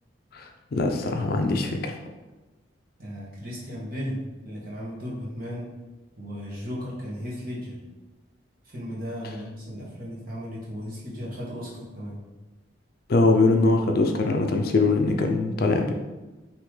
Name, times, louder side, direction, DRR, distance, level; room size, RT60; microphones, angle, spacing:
voice 1, 0.3-1.9 13.1-15.9, left 3 dB, 50° left, 4 dB, 0.4 m, -22 dB
voice 2, 3.0-4.2 4.4-5.7 6.2-7.8 8.6-12.2, equal, 45° right, -6 dB, 1.4 m, -35 dB
5.6 x 2.9 x 3.2 m, 1.1 s
head